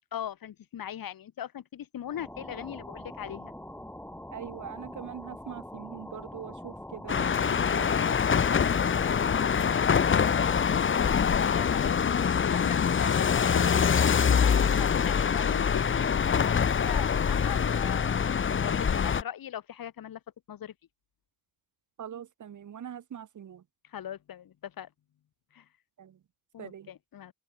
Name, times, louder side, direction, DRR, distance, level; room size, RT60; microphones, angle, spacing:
voice 1, 0.1-3.5 8.4-8.7 9.0-20.2 20.5-20.7 23.9-24.9 25.5-25.6 26.5-27.3, left 10 dB, 60° left, 6.8 m, -40 dB
sound 1, 2.0-10.9, left 1 dB, 5° left, 6.8 m, -44 dB
voice 2, 4.3-8.0 22.0-23.6 26.0-26.2 26.6-26.9, right 9 dB, 50° right, 2.3 m, -42 dB
sound 2, 7.1-19.2, left 7 dB, 30° left, 1.0 m, -25 dB
open air
supercardioid pair, 65°, 39 cm